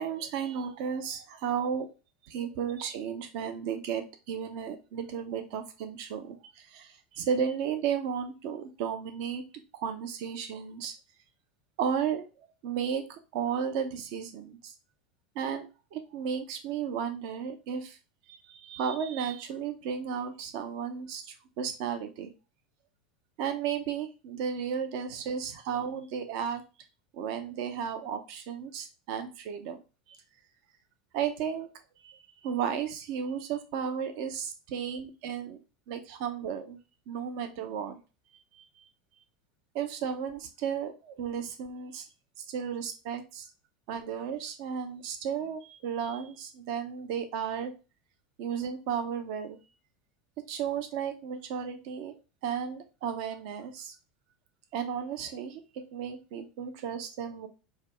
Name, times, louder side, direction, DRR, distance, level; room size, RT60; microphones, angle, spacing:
voice 1, 0.0-1.9 2.3-9.4 9.7-10.9 11.8-12.3 12.6-14.7 15.4-18.0 18.3-22.3 23.4-26.6 27.1-29.8 31.1-31.7 32.0-35.6 35.9-36.8 37.1-38.0 38.5-38.8 39.7-42.1 42.4-43.5 43.9-47.7 48.4-49.6 50.5-52.1 52.4-53.9 54.7-55.6 55.9-57.5, right 7 dB, 60° right, 7 dB, 0.6 m, -34 dB
4.5 x 2.3 x 3.4 m, 0.31 s
hypercardioid pair, 90°, 4 cm